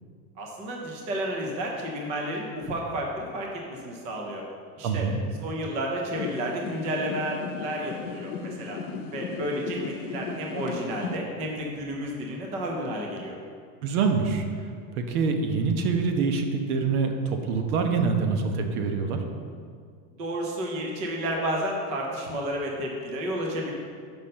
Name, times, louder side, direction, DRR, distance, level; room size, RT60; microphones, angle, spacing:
voice 1, 0.4-4.4 4.8-5.1 5.4-8.8 9.1-13.4 20.2-23.7, equal, 15° right, -1 dB, 0.4 m, -31 dB
voice 2, 4.8-5.2 13.8-14.4 14.9-19.2, right 4 dB, 80° right, 4 dB, 1.1 m, -25 dB
sound 1, 6.2-11.2, left 4 dB, 85° left, 0.8 m, -36 dB
5.9 x 5.4 x 6.4 m, 2.1 s
supercardioid pair, 180°, 43 cm